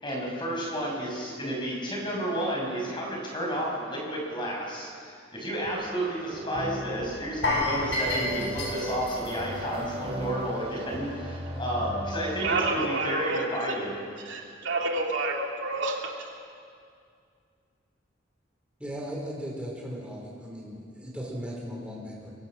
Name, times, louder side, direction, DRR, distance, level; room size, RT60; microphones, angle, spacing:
voice 1, 0.0-13.9 14.4-14.5, equal, 25° left, -2 dB, 6.1 m, -32 dB
sound 1, 5.7-12.7, equal, 35° right, 4.4 m, -37 dB
sound 2, 7.4-10.4 10.7-10.9 11.4-11.5, left 2 dB, 70° left, 7.0 m, -30 dB
voice 2, 12.4-13.7 14.2-16.1, right 2 dB, 75° right, 0 dB, 2.9 m, -29 dB
voice 3, 18.8-22.3, equal, 5° right, -3 dB, 4.9 m, -37 dB
23.0 x 23.0 x 6.2 m, 2.3 s
head